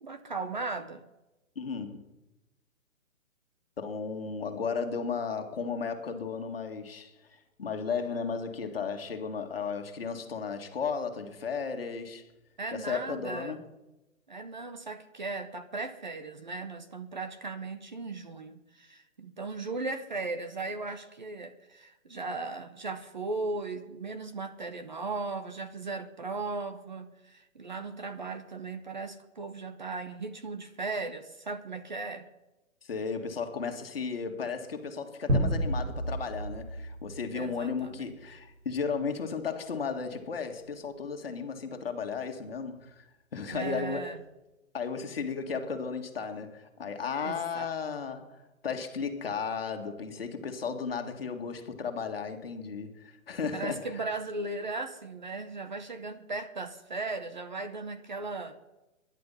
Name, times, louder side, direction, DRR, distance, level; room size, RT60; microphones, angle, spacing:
voice 1, 0.0-1.0 12.6-13.5 14.3-32.3 37.3-38.1 43.5-44.2 47.2-47.7 53.5-58.6, right 3 dB, 35° right, 0.9 m, -37 dB
voice 2, 1.6-2.0 3.8-7.1 7.6-12.2 12.7-13.6 32.8-44.1 44.7-54.1, left 5 dB, 45° left, 2.1 m, -34 dB
sound 1, 35.3-38.1, equal, 85° right, 5.2 m, -31 dB
21.0 x 11.0 x 5.6 m
hypercardioid pair, 175°, 41 cm